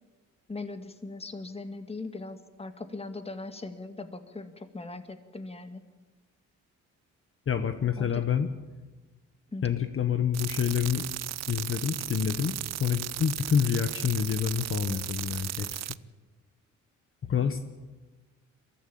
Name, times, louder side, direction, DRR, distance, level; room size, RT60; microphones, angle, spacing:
voice 1, 0.5-5.8 8.0-8.2 9.5-9.6 17.3-17.5, left 3 dB, 20° left, 8 dB, 2.0 m, -40 dB
voice 2, 7.5-8.5 9.6-11.2 11.5-15.9 17.3-17.6, left 7 dB, 45° left, 8 dB, 1.3 m, -28 dB
sound 1, 10.3-16.0, right 13 dB, 60° right, 0.6 m, -36 dB
23.0 x 14.5 x 8.6 m, 1.2 s
cardioid pair, 90°, 30 cm